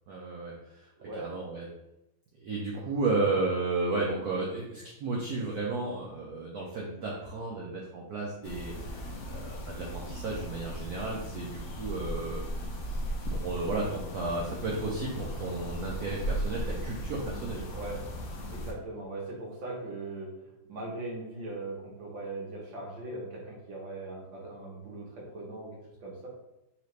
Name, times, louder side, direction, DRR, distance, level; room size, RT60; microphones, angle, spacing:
voice 1, 0.1-0.9 1.2-1.7 2.4-12.6 13.3-17.6, right 3 dB, 85° right, -3 dB, 0.8 m, -33 dB
voice 2, 1.0-1.3 17.7-18.0 18.5-20.3 20.6-26.3, right 2 dB, 65° right, -3 dB, 1.8 m, -40 dB
sound 1, 8.4-18.7, equal, 85° left, 0.8 m, -37 dB
4.2 x 2.9 x 3.2 m, 0.89 s
omnidirectional pair, 2.4 m